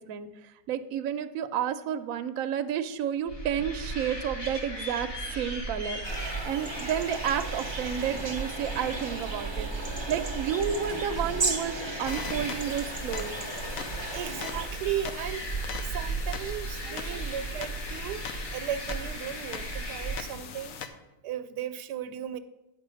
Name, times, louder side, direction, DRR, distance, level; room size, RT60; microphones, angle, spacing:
voice 1, 0.0-5.1 5.3-9.7 10.1-13.3 16.9-17.0, right 8 dB, 70° right, 8 dB, 0.9 m, -31 dB
sound 1, 3.3-20.2, right 2 dB, 30° left, 2.8 m, -36 dB
sound 2, 6.0-14.7, right 3 dB, 35° right, 0.4 m, -36 dB
sound 3, 12.1-20.9, left 6 dB, 65° left, 1.0 m, -41 dB
voice 2, 14.1-15.5 15.8-18.2 18.5-20.8 21.2-22.4, right 10 dB, 90° right, 12 dB, 1.2 m, -35 dB
10.0 x 4.5 x 6.2 m, 1.0 s
omnidirectional pair, 1.7 m